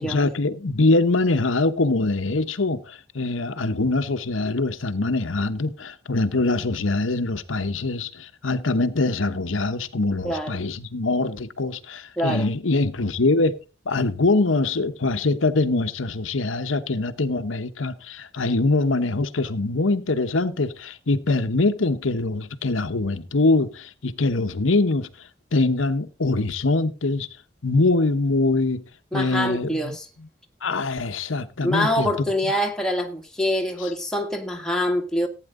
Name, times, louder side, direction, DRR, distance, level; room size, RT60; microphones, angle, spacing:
voice 1, 0.0-13.6 13.9-27.3 27.6-28.8 29.1-30.3 30.6-32.3 33.8-33.9, left 2 dB, 85° left, 1.0 m, -23 dB
voice 2, 10.2-10.7 12.2-12.5 29.1-30.1 31.6-35.3, left 1 dB, 5° left, 1.7 m, -25 dB
15.5 x 9.2 x 3.8 m
head